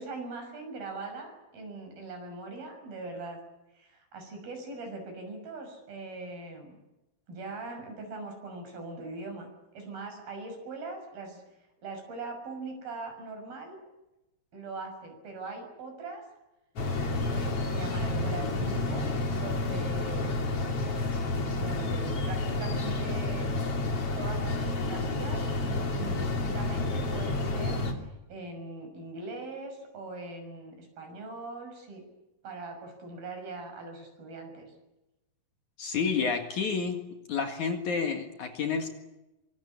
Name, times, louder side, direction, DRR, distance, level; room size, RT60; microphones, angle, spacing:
voice 1, 0.0-3.4 3.7-6.7 7.3-9.5 9.7-11.4 11.8-13.8 14.5-16.2 17.2-20.5 21.5-23.5 24.2-32.0 32.4-34.7, right 3 dB, 65° right, 4 dB, 8.1 m, -41 dB
sound 1, 16.8-27.9, left 2 dB, 40° left, 3.3 m, -30 dB
voice 2, 35.8-37.0 37.3-38.9, left 5 dB, 55° left, 5 dB, 2.9 m, -29 dB
24.5 x 22.5 x 8.6 m, 0.98 s
omnidirectional pair, 4.6 m